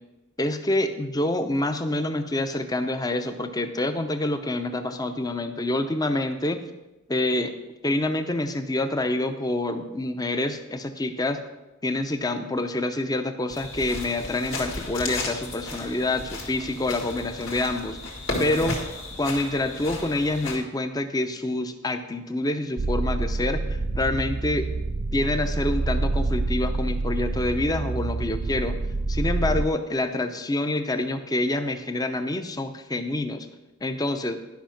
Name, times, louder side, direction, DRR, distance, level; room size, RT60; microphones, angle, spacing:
voice 1, 0.4-6.6 7.1-7.5 7.8-11.4 11.8-18.0 18.4-18.8 19.2-24.7 25.1-28.8 29.1-33.5 33.8-34.4, left 2 dB, 20° left, 8 dB, 0.6 m, -27 dB
sound 1, 13.5-20.6, left 2 dB, 65° left, 2.1 m, -34 dB
sound 2, 22.8-29.7, right 2 dB, 35° right, 0.3 m, -27 dB
11.5 x 5.6 x 5.8 m, 1.0 s
head